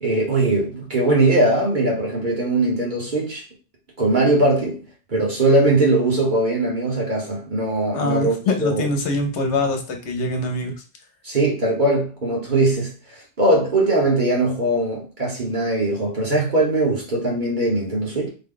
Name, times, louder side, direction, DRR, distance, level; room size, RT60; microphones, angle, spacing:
voice 1, 0.0-3.4 4.0-4.8 5.1-8.4 8.6-8.9 11.2-18.3, right 2 dB, 45° right, -3 dB, 1.4 m, -20 dB
voice 2, 7.9-10.7, left 2 dB, 75° left, 4 dB, 1.1 m, -23 dB
4.0 x 2.3 x 3.8 m, 0.36 s
omnidirectional pair, 1.2 m